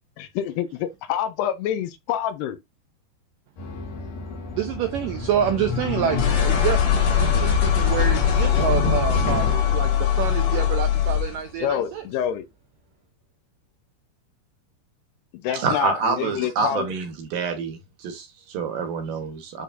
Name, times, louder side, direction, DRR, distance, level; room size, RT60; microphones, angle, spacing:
voice 1, 0.2-2.6 11.6-12.5 15.4-16.9, left 10 dB, 80° left, 2.9 m, -27 dB
sound 1, 3.6-11.4, left 8 dB, 65° left, 3.7 m, -22 dB
voice 2, 4.5-12.0, right 9 dB, 80° right, 2.0 m, -27 dB
voice 3, 15.5-19.6, right 5 dB, 65° right, 2.7 m, -27 dB
11.5 x 4.0 x 2.6 m
omnidirectional pair, 4.8 m